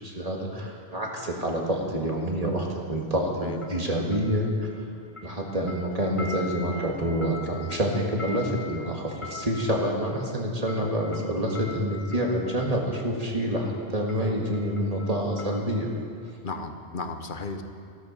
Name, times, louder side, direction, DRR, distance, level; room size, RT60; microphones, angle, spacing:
voice 1, 0.0-4.7 5.2-15.9, equal, 35° right, 0 dB, 1.9 m, -27 dB
sound 1, 3.6-4.9 5.2-12.9 13.6-13.8 14.1-16.0 16.3-16.4, left 4 dB, 30° left, 2.0 m, -43 dB
voice 2, 16.4-17.6, left 3 dB, 50° left, 6 dB, 1.0 m, -35 dB
14.5 x 13.0 x 5.4 m, 2.2 s
omnidirectional pair, 1.1 m